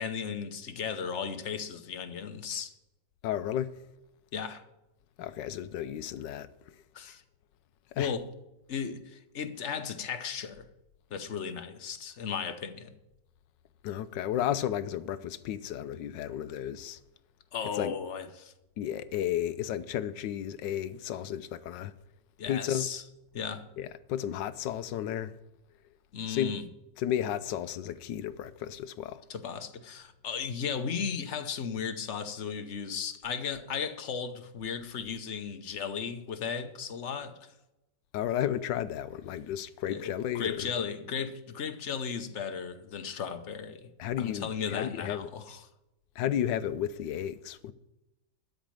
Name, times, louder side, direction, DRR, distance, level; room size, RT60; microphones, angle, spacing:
voice 1, 0.0-2.7 4.3-4.6 6.9-7.2 8.0-8.2 8.7-10.6 11.1-12.9 17.5-18.5 22.4-23.0 23.3-23.7 26.1-26.7 29.3-37.5 39.9-40.1 40.3-43.9 44.2-45.7, left 6 dB, 50° left, 1.1 m, -35 dB
voice 2, 3.2-3.7 5.2-6.5 7.9-8.1 13.8-17.0 17.7-17.9 18.8-21.9 22.5-22.9 23.8-25.4 26.3-26.5 27.0-29.2 38.1-40.7 44.0-45.3 46.2-47.7, left 10 dB, 90° left, 1.4 m, -33 dB
13.0 x 5.2 x 8.9 m
omnidirectional pair, 1.9 m